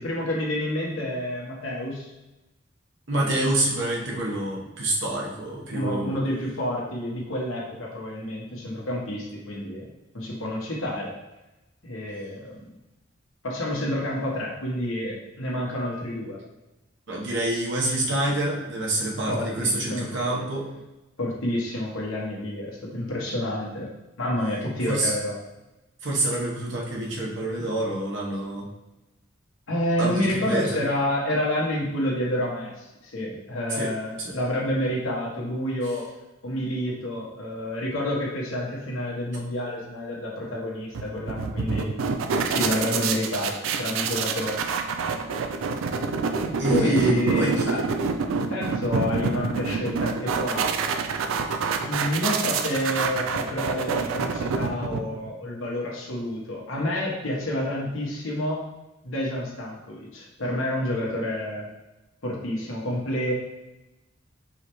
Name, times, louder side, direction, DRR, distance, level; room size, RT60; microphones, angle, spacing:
voice 1, 0.0-2.1 3.1-3.4 5.7-9.9 10.1-11.1 11.8-12.7 13.4-16.4 19.3-20.4 21.2-23.9 24.2-25.3 27.5-27.7 29.7-36.0 36.4-41.9 42.4-44.6 46.5-47.9 48.3-50.6 51.8-58.6 59.0-61.7 62.2-63.3, left 1 dB, 90° left, -3 dB, 1.2 m, -29 dB
voice 2, 3.1-6.2 17.1-20.7 24.9-25.1 26.0-28.7 30.0-30.8 33.7-33.9 34.2-34.3 46.6-47.6, right 1 dB, 65° right, -3 dB, 1.0 m, -27 dB
sound 1, 40.9-55.3, right 5 dB, 85° right, 0.4 m, -27 dB
4.7 x 3.3 x 3.1 m, 1.0 s
head